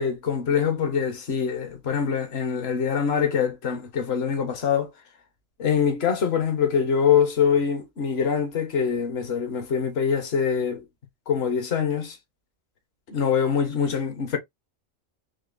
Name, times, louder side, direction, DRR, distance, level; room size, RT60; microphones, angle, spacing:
voice 1, 0.0-4.9 5.6-10.9 11.3-12.2 13.1-14.4, left 7 dB, 60° left, 1.2 m, -24 dB
4.1 x 2.9 x 2.5 m
omnidirectional pair, 1.3 m